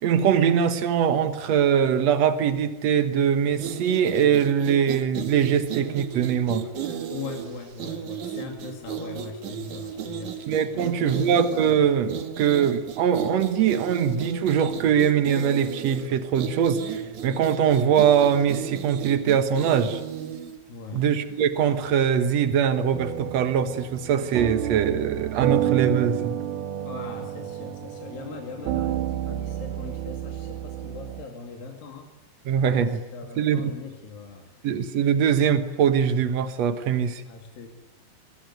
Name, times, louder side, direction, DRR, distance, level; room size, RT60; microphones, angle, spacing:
voice 1, 0.0-6.7 10.5-20.0 20.9-26.4 32.4-33.0 33.4-33.7 34.6-37.2, right 8 dB, 85° right, 9 dB, 1.5 m, -22 dB
sound 1, 3.5-20.6, right 7 dB, 50° right, 2.9 m, -34 dB
voice 2, 7.1-11.3 20.7-21.1 26.8-32.1 32.4-32.5 32.9-34.7 37.3-37.7, left 5 dB, 60° left, 2 dB, 3.8 m, -40 dB
sound 2, 22.9-31.2, right 12 dB, 70° right, 2.9 m, -30 dB
24.5 x 21.0 x 9.4 m, 1.0 s
omnidirectional pair, 5.0 m